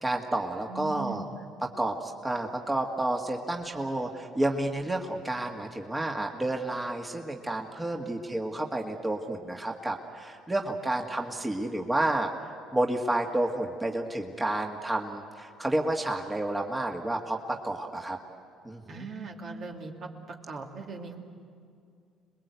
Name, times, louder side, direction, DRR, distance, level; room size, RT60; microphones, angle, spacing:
voice 1, 0.0-1.2 1.8-12.3 12.7-18.2 18.6-19.1, right 1 dB, 15° right, 1 dB, 2.0 m, -30 dB
voice 2, 0.7-1.3 18.9-20.1 20.5-21.2, right 4 dB, 55° right, 1 dB, 2.7 m, -39 dB
27.0 x 21.0 x 8.3 m, 2.3 s
supercardioid pair, 70°, 0 cm